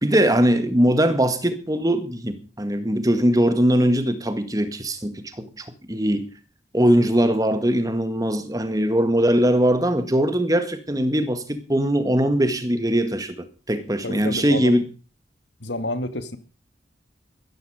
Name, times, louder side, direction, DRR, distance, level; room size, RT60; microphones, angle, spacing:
voice 1, 0.0-6.2 6.7-14.9, equal, 20° right, 1.9 m, -21 dB
voice 2, 14.0-14.8 15.6-16.4, left 2 dB, 75° left, 2.1 m, -29 dB
15.0 x 14.0 x 5.0 m
head